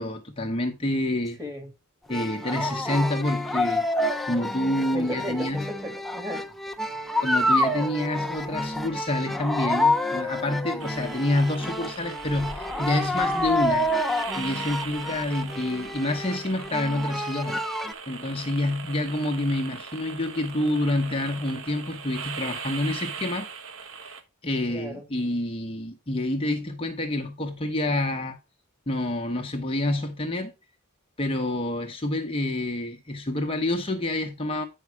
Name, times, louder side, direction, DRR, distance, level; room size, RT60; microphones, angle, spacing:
voice 1, 0.0-1.4 2.1-3.9 4.2-5.7 7.2-23.5 24.4-28.4 28.9-30.5 31.2-34.6, left 1 dB, 25° left, 0.9 m, -28 dB
voice 2, 1.4-1.7 4.9-6.5 24.7-25.0, equal, 15° right, 2.3 m, -35 dB
sound 1, 2.1-17.9, left 1 dB, ahead, 0.6 m, -28 dB
sound 2, 10.8-24.2, right 6 dB, 65° right, 1.3 m, -40 dB
9.4 x 5.5 x 4.7 m
head